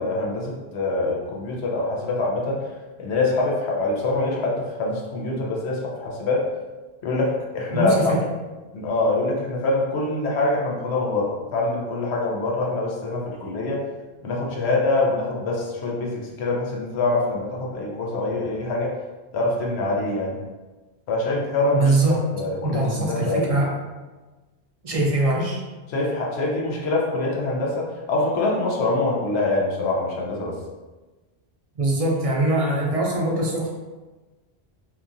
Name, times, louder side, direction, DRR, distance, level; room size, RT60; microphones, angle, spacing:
voice 1, 0.0-2.6 3.0-6.4 7.0-8.0 8.7-13.8 14.2-18.9 19.3-20.3 21.1-21.9 22.3-23.5 25.9-30.5, left 2 dB, 80° left, -2 dB, 0.9 m, -24 dB
voice 2, 7.7-8.2 21.7-22.2 22.6-23.7 24.8-25.6 31.8-33.7, right 2 dB, 50° right, -3 dB, 0.4 m, -22 dB
2.9 x 2.4 x 2.5 m, 1.2 s
omnidirectional pair, 1.1 m